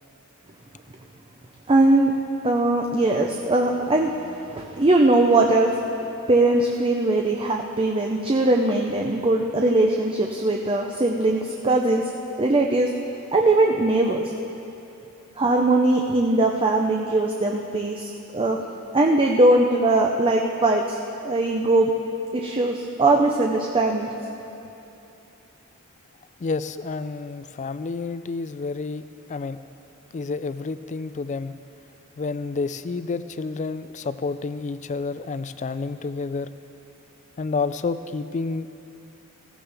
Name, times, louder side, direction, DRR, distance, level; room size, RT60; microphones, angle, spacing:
voice 1, 1.7-2.1 2.4-5.7 6.3-12.1 12.4-12.9 13.3-14.3 15.4-18.6 18.9-21.9 22.3-24.1, right 2 dB, 25° right, 1 dB, 0.6 m, -20 dB
voice 2, 26.4-29.6 30.1-31.5 32.2-36.5 37.4-38.7, left 4 dB, 35° left, 13 dB, 0.3 m, -29 dB
15.5 x 15.0 x 3.4 m, 2.9 s
head